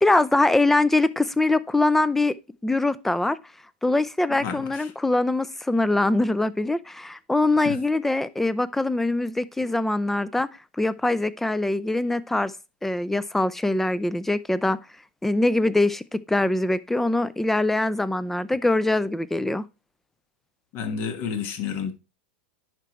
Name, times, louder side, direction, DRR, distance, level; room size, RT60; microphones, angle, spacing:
voice 1, 0.0-2.3 2.6-3.4 3.8-10.5 10.8-12.5 12.8-14.8 15.2-19.7, left 2 dB, 5° left, 0.4 m, -23 dB
voice 2, 4.3-4.9 7.6-7.8 20.7-21.9, left 7 dB, 45° left, 1.3 m, -30 dB
11.0 x 4.6 x 3.0 m
supercardioid pair, 130°, 6 cm